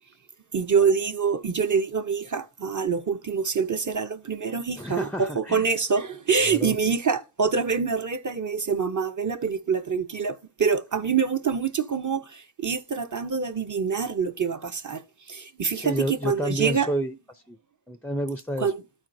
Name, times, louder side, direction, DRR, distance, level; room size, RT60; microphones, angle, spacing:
voice 1, 0.5-15.0 15.3-16.9 18.6-18.7, right 6 dB, 40° right, 0.7 m, -25 dB
voice 2, 4.8-5.7 6.4-6.8 15.7-17.6 17.9-18.7, right 1 dB, 5° left, 0.4 m, -30 dB
13.0 x 4.4 x 2.6 m
wide cardioid pair, 65°, 49 cm